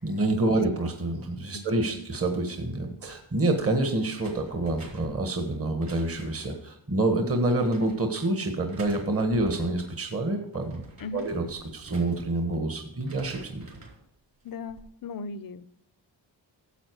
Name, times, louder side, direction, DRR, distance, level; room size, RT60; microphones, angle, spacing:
voice 1, 0.0-10.8 11.1-13.7, right 2 dB, 30° right, 5 dB, 1.5 m, -27 dB
voice 2, 1.5-2.0 11.0-11.3 14.4-15.6, left 4 dB, 50° left, 15 dB, 0.7 m, -38 dB
sound 1, 4.2-6.6 7.3-8.3 8.7-9.9 10.4-12.6 12.9-14.0 14.5-14.9, right 2 dB, 45° right, 4.1 m, -47 dB
10.0 x 7.7 x 4.7 m, 0.74 s
cardioid pair, 65°, 46 cm